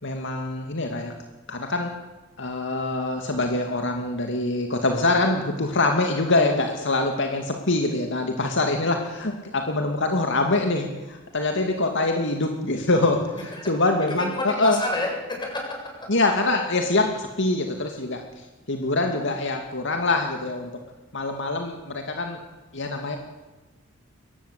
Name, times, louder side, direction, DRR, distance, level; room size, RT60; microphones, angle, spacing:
voice 1, 0.0-1.1 1.5-1.9 2.4-13.3 13.6-14.8 16.1-18.2 18.7-20.7 21.1-22.4 22.7-23.2, left 2 dB, 65° left, 4 dB, 2.4 m, -24 dB
voice 2, 13.5-16.1, left 1 dB, 25° left, 1 dB, 7.6 m, -30 dB
22.5 x 19.0 x 8.3 m, 1.2 s
head